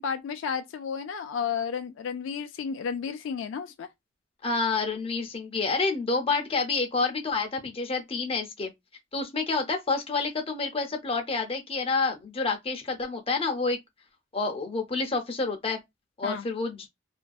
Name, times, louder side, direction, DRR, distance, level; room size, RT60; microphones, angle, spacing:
voice 1, 0.0-3.9 16.2-16.4, left 6 dB, 75° left, 0.3 m, -32 dB
voice 2, 4.4-8.7 9.1-13.8 14.3-15.8 16.2-16.9, left 4 dB, 30° left, 0.6 m, -28 dB
2.5 x 2.1 x 2.3 m
head